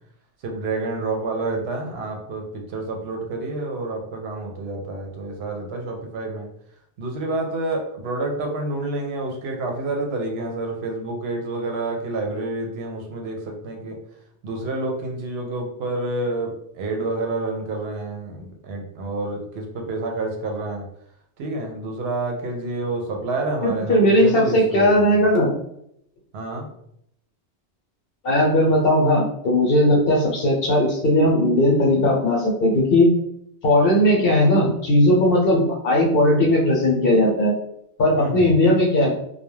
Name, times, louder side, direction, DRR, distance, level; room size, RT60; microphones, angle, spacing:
voice 1, 0.4-6.5 7.0-14.0 14.4-20.8 21.4-24.9 26.3-26.7 38.1-38.5, right 2 dB, 70° right, 2 dB, 0.8 m, -28 dB
voice 2, 23.6-25.5 28.2-33.1 33.6-37.5 38.0-39.1, left 1 dB, 60° left, -2 dB, 0.9 m, -18 dB
2.2 x 2.2 x 3.1 m, 0.73 s
omnidirectional pair, 1.1 m